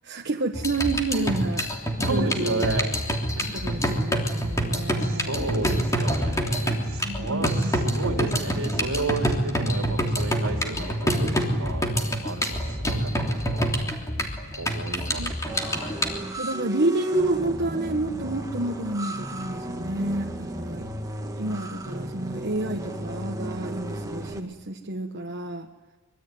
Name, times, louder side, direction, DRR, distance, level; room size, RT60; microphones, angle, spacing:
voice 1, 0.0-2.8 3.5-5.5 7.0-7.7 15.2-15.4 16.3-20.9 21.4-25.7, right 2 dB, 50° right, 3 dB, 1.3 m, -29 dB
sound 1, 0.5-16.1, equal, 15° left, 3.2 m, -26 dB
voice 2, 2.0-2.9 3.4-3.7 5.0-11.9 12.2-13.7 14.5-15.9, right 3 dB, 70° right, 2 dB, 3.8 m, -32 dB
sound 2, 15.5-24.4, right 1 dB, 15° right, 1.9 m, -34 dB
25.0 x 23.0 x 9.4 m, 1.2 s
head